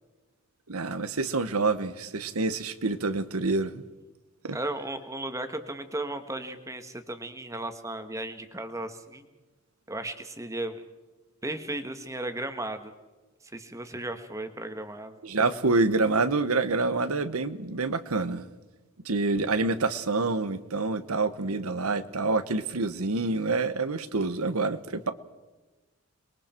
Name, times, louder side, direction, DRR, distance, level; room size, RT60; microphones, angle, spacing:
voice 1, 0.7-3.8 4.4-4.6 15.2-18.5 19.0-25.1, right 3 dB, 80° right, 12 dB, 1.2 m, -27 dB
voice 2, 4.5-9.3 9.9-10.8 11.4-12.9 13.5-15.2, right 1 dB, 15° right, 8 dB, 1.5 m, -35 dB
29.5 x 22.0 x 4.5 m, 1.2 s
head